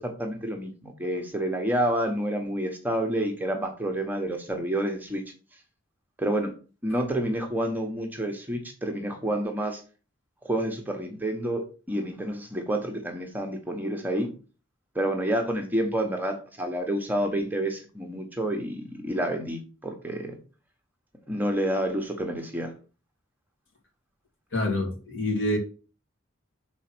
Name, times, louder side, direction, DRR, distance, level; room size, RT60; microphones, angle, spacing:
voice 1, 0.0-5.2 6.2-6.5 6.8-9.8 10.4-14.3 14.9-20.3 21.3-22.7, right 1 dB, 10° right, 1.0 m, -29 dB
voice 2, 24.5-25.6, left 1 dB, 65° left, 2.5 m, -26 dB
6.2 x 4.3 x 6.0 m
head